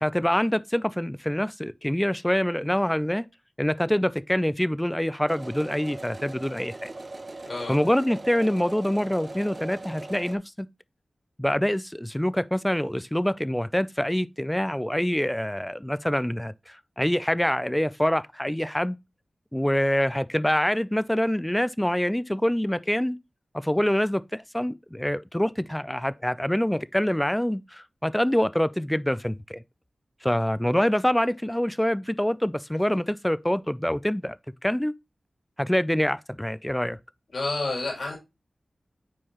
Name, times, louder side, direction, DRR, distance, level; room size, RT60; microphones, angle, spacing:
voice 1, 0.0-3.3 3.6-6.9 7.7-10.7 11.4-19.0 19.5-23.2 23.5-29.6 30.2-34.4 34.6-34.9 35.6-37.0, equal, 10° left, 0.4 m, -25 dB
Sewing machine, 5.3-10.4, right 2 dB, 45° right, 0.7 m, -40 dB
voice 2, 7.4-7.8 37.3-38.2, left 2 dB, 60° left, 2.9 m, -29 dB
7.3 x 4.5 x 2.9 m
cardioid pair, 55°, 0 cm